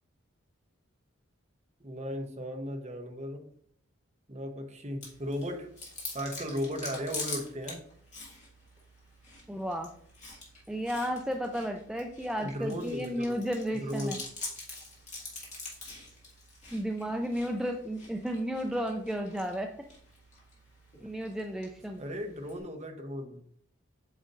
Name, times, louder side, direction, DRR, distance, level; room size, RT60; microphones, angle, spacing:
voice 1, 1.8-3.5 4.3-5.7 6.1-7.8 12.4-13.4 13.7-14.2 22.0-23.4, equal, 35° right, 4 dB, 0.9 m, -36 dB
Chewing mastication, 5.0-22.6, left 3 dB, 35° left, 2.0 m, -45 dB
voice 2, 9.5-9.9 10.7-14.2 16.7-19.7 21.0-22.1, equal, 5° right, 3 dB, 0.3 m, -33 dB
8.0 x 5.1 x 2.5 m, 0.62 s
head